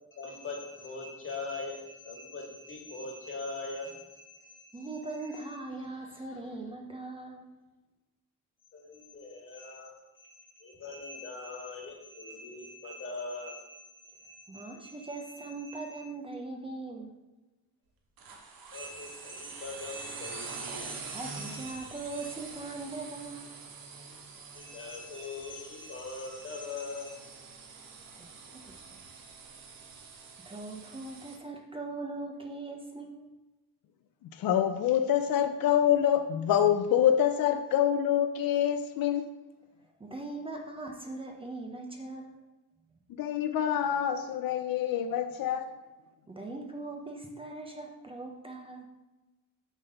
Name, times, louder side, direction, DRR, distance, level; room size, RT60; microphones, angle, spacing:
voice 1, 0.2-4.9 5.9-6.5 8.7-9.9 10.2-13.8 14.1-16.0 18.7-21.9 22.2-22.3 24.5-27.1, left 3 dB, 35° left, 0 dB, 2.0 m, -42 dB
voice 2, 4.7-7.5 14.5-17.1 21.1-23.5 28.2-29.0 30.5-33.3 40.0-42.4 46.3-48.9, right 2 dB, 15° right, 2 dB, 0.8 m, -40 dB
sound 1, 18.2-31.4, right 5 dB, 80° right, 1.3 m, -45 dB
voice 3, 34.2-39.3 43.1-45.7, left 10 dB, 80° left, 8 dB, 0.7 m, -26 dB
7.3 x 3.9 x 6.5 m, 1.1 s
cardioid pair, 150°, 34 cm